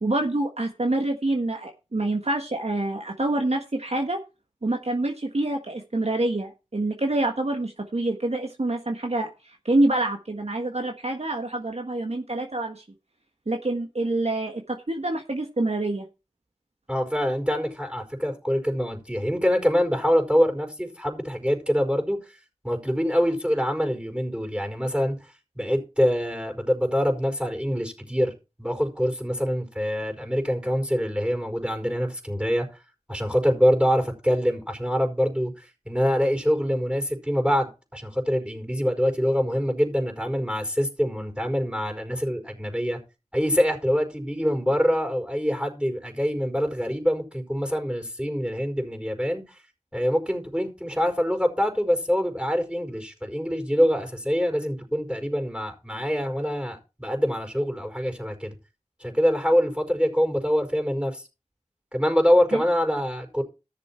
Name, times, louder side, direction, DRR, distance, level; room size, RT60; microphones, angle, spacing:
voice 1, 0.0-4.2 4.6-12.8 13.5-16.1, right 2 dB, 55° right, 1.6 m, -26 dB
voice 2, 16.9-22.2 22.6-25.2 25.5-28.3 28.6-32.6 33.1-43.0 43.3-49.6 49.9-58.5 59.0-61.2 61.9-63.4, equal, 10° right, 4.8 m, -25 dB
14.5 x 6.9 x 4.4 m
wide cardioid pair, 40°, 13 cm